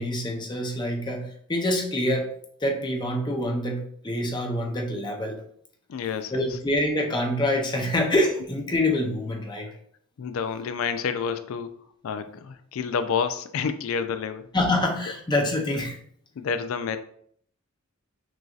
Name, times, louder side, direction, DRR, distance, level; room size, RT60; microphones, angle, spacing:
voice 1, 0.0-2.3 2.6-5.4 6.3-9.7 14.5-16.0, left 1 dB, 20° left, 1 dB, 0.5 m, -26 dB
voice 2, 5.9-6.6 10.2-11.7 12.0-14.5 16.4-17.0, left 6 dB, 80° left, 10 dB, 0.4 m, -29 dB
6.1 x 2.6 x 2.4 m, 0.64 s
head